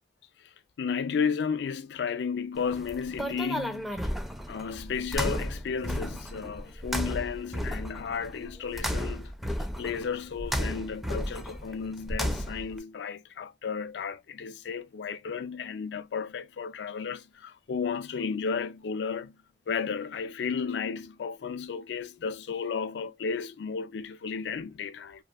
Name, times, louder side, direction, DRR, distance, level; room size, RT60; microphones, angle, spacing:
voice 1, 0.4-4.1 4.5-9.3 9.8-19.4 19.7-25.2, left 6 dB, 70° left, 0.3 m, -33 dB
sound 1, 2.6-12.8, equal, ahead, 0.4 m, -34 dB
2.7 x 2.5 x 2.3 m
head